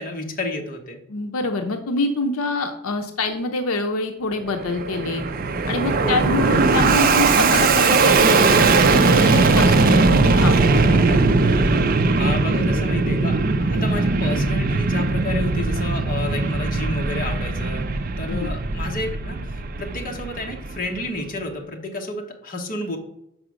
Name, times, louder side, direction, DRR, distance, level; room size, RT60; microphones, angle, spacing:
voice 1, 0.0-1.0 6.0-6.2 12.2-17.9 18.2-23.0, left 2 dB, 40° left, 2 dB, 1.1 m, -31 dB
voice 2, 1.1-5.2 5.7-11.4 18.3-18.5, left 3 dB, 75° left, 5 dB, 0.6 m, -26 dB
Fixed-wing aircraft airplane, 4.5-21.1, right 3 dB, 40° right, 0.5 m, -19 dB
5.7 x 4.9 x 6.3 m, 0.80 s
head